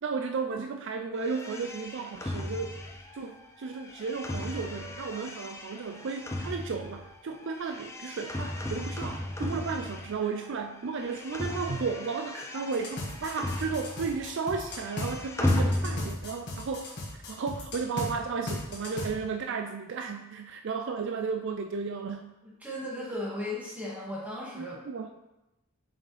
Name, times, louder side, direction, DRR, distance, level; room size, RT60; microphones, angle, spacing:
voice 1, 0.0-2.8 3.1-16.9 17.3-22.3 24.6-25.1, right 5 dB, 55° right, 5 dB, 0.4 m, -34 dB
sound 1, 1.2-10.5 10.7-14.2 14.4-16.4, left 1 dB, 15° left, 0.6 m, -35 dB
sound 2, 12.7-15.1 15.5-18.1 18.5-19.1, left 1 dB, 50° left, 1.9 m, -36 dB
voice 2, 22.4-24.8, left 1 dB, 5° right, -8 dB, 2.4 m, -36 dB
7.2 x 6.0 x 3.3 m, 0.95 s
head